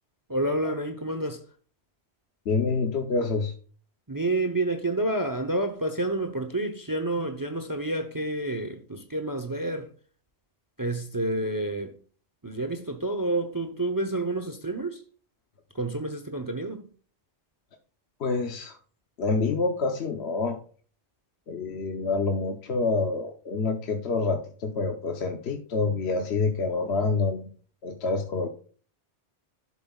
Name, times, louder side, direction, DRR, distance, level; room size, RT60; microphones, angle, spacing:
voice 1, 0.3-1.4 4.1-9.9 10.8-11.9 12.4-15.0 15.7-16.9, right 2 dB, 20° right, 0.8 m, -29 dB
voice 2, 2.5-3.5 18.2-18.8 19.2-20.6 21.5-27.4 27.8-28.5, left 4 dB, 65° left, 1.1 m, -27 dB
11.5 x 7.4 x 2.4 m
omnidirectional pair, 1.2 m